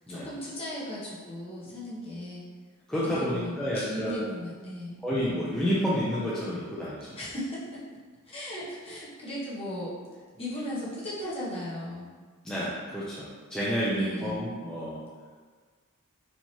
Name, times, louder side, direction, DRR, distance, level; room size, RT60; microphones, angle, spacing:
voice 1, 0.1-2.4 3.2-5.0 7.2-7.8 8.3-9.9 10.4-12.1 14.0-14.4, equal, 25° left, -7 dB, 0.9 m, -37 dB
voice 2, 2.9-4.3 5.0-7.1 12.4-15.0, equal, 5° left, -9 dB, 0.4 m, -30 dB
4.5 x 2.8 x 2.8 m, 1.5 s
head